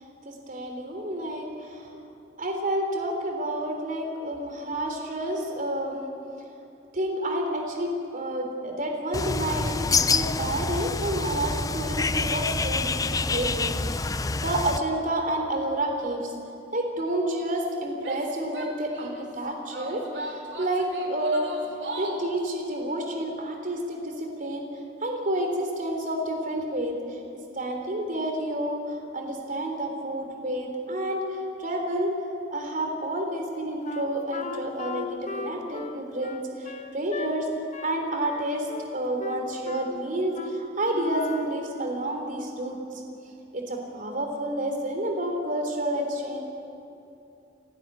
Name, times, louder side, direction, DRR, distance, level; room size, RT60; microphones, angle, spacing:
voice 1, 0.3-1.9 2.4-6.1 6.9-16.3 16.7-21.5 22.0-27.2 27.5-32.1 32.5-37.5 37.8-43.0 43.5-46.4, right 1 dB, 45° right, 3 dB, 3.6 m, -30 dB
Bird, 9.1-14.8, left 4 dB, 20° left, 0.5 m, -27 dB
Female speech woman speaking / Yell, 18.0-19.2 19.7-22.3, right 1 dB, 70° right, 2.9 m, -37 dB
Wind instrument woodwind instrument, 33.8-37.3 37.7-38.0 38.2-38.9 39.2-40.0 40.3-40.6 40.9-41.6, left 3 dB, 40° left, 1.3 m, -36 dB
29.0 x 12.5 x 9.7 m, 2.8 s
head